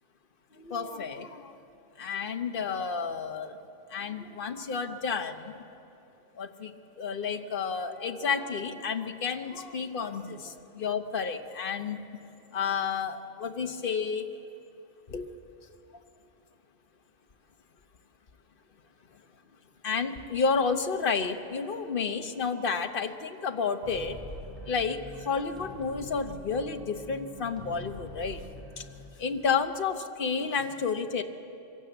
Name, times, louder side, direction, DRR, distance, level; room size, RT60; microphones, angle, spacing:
voice 1, 0.5-1.5 2.0-3.6 3.9-5.6 6.3-12.1 12.5-14.3 15.1-15.3 19.8-24.2 24.6-28.5 28.8-28.9 29.2-31.2, left 5 dB, 50° left, 6 dB, 1.2 m, -31 dB
sound 1, 23.8-29.0, left 1 dB, ahead, 3.9 m, -45 dB
24.0 x 16.5 x 8.0 m, 2.8 s
omnidirectional pair, 1.2 m